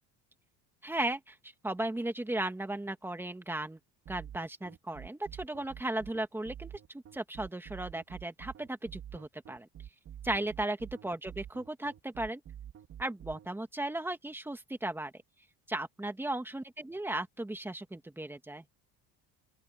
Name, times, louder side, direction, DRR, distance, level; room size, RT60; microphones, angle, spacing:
voice 1, 0.8-3.8 4.1-9.7 10.2-12.4 13.0-15.2 15.7-18.6, right 1 dB, 5° right, 2.2 m, -36 dB
sound 1, 4.1-13.5, right 10 dB, 45° right, 3.0 m, -47 dB
open air
cardioid pair, 120°, 33 cm